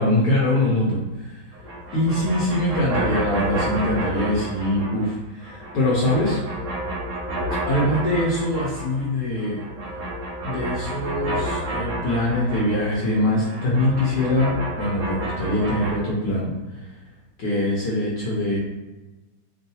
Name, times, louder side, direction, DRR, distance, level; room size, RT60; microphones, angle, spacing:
voice 1, 0.0-1.5 1.9-6.4 7.7-9.6 10.4-16.9 17.4-18.6, left 1 dB, 65° left, -6 dB, 1.2 m, -23 dB
sound 1, 1.5-5.1 5.4-9.1 9.4-15.9, right 1 dB, 55° right, 0.9 m, -30 dB
3.6 x 2.3 x 2.7 m, 1.1 s
omnidirectional pair, 2.1 m